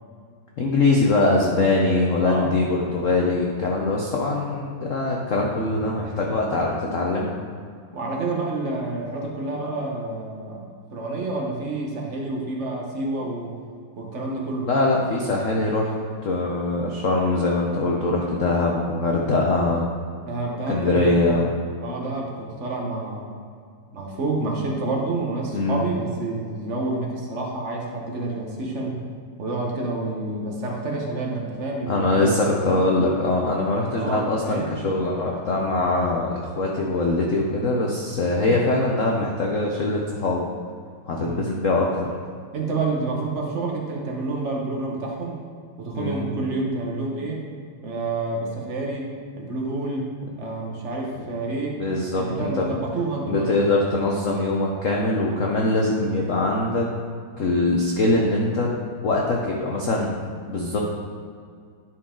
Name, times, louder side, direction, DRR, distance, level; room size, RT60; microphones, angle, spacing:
voice 1, 0.6-7.4 14.7-15.9 16.2-19.9 20.7-21.5 25.5-25.9 31.9-40.4 41.1-42.1 45.9-46.4 51.8-52.7 53.3-56.9 57.4-58.7 59.0-60.8, left 2 dB, 80° left, -1 dB, 0.7 m, -22 dB
voice 2, 2.2-2.5 7.9-13.5 13.9-14.7 20.3-21.5 21.8-23.3 23.9-29.0 29.4-32.6 33.9-34.7 41.2-41.4 42.5-45.4 45.8-47.5 47.8-50.1 50.4-51.8 52.1-53.5, right 2 dB, 40° right, -1 dB, 1.1 m, -29 dB
11.0 x 4.6 x 3.8 m, 2.2 s
omnidirectional pair, 2.4 m